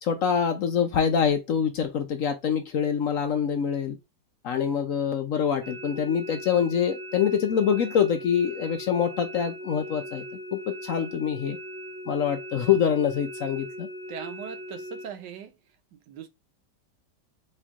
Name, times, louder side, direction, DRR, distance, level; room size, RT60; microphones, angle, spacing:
voice 1, 0.0-4.0 4.4-10.2 10.5-11.6 12.1-13.9, left 7 dB, 65° left, 0.9 m, -25 dB
sound 1, 5.6-15.1, equal, 40° right, 1.2 m, -39 dB
voice 2, 14.1-15.6 15.9-16.3, right 8 dB, 85° right, 1.5 m, -39 dB
4.4 x 3.0 x 3.5 m
omnidirectional pair, 1.9 m